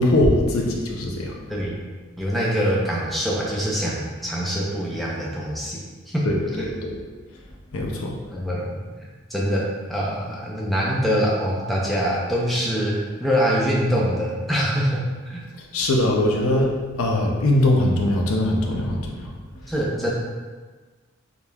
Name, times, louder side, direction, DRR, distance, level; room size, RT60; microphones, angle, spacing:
voice 1, 0.0-1.3 6.2-6.4 6.8-7.0 7.7-8.2 15.7-19.3, left 1 dB, 80° left, -1 dB, 0.7 m, -21 dB
voice 2, 1.5-1.8 2.2-6.3 6.5-6.7 8.3-15.4 19.7-20.1, equal, ahead, -5 dB, 0.6 m, -24 dB
5.1 x 3.0 x 2.3 m, 1.4 s
head